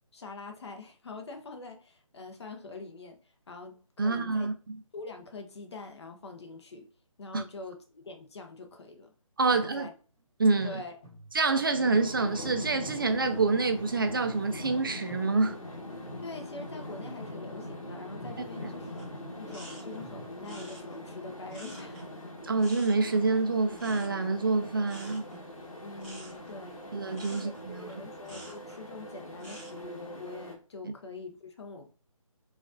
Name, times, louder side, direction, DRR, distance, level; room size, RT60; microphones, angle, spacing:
voice 1, 0.1-4.5 4.9-6.9 7.2-9.1 9.5-9.9 10.6-10.9 11.7-11.9 16.2-19.0 19.4-22.0 25.8-26.9 27.3-31.9, left 3 dB, 50° left, 0.8 m, -44 dB
voice 2, 4.0-4.8 7.3-7.4 9.4-9.9 10.4-10.8 11.3-15.6 22.4-25.3 26.9-28.0, right 3 dB, 40° right, 0.4 m, -27 dB
sound 1, 9.9-10.0 10.6-11.8 12.4-13.8 14.2-16.5 17.1-17.4 18.0-19.1 20.0-20.3, right 1 dB, 20° left, 1.1 m, -53 dB
sound 2, 11.9-30.5, left 1 dB, 70° left, 1.4 m, -42 dB
sound 3, 18.8-28.9 29.3-29.8, right 1 dB, ahead, 1.3 m, -49 dB
4.9 x 2.4 x 2.6 m
figure-of-eight pair, 160°, 18 cm